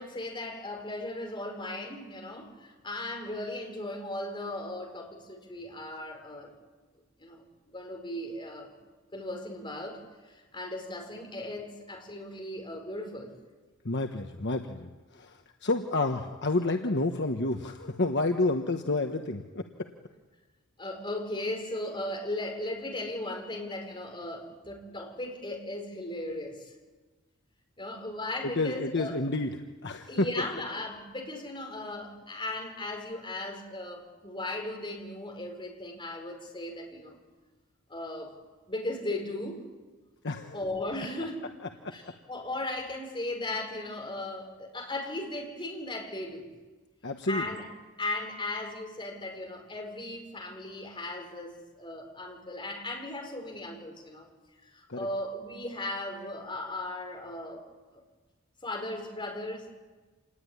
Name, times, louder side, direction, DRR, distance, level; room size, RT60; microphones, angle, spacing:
voice 1, 0.0-6.5 7.2-7.4 7.7-8.7 9.1-13.3 20.8-26.7 27.8-29.2 30.1-37.2 37.9-38.4 38.7-39.6 40.5-41.4 41.9-46.5 47.3-47.6 48.0-54.3 54.7-57.6 57.9-58.0 58.6-59.7, left 1 dB, 25° left, 2 dB, 5.1 m, -37 dB
voice 2, 13.8-19.6 28.4-30.3 40.2-40.6 41.8-41.9 47.0-47.5 54.9-55.1, left 2 dB, 55° left, 5 dB, 1.3 m, -30 dB
27.5 x 19.5 x 9.9 m, 1.3 s
head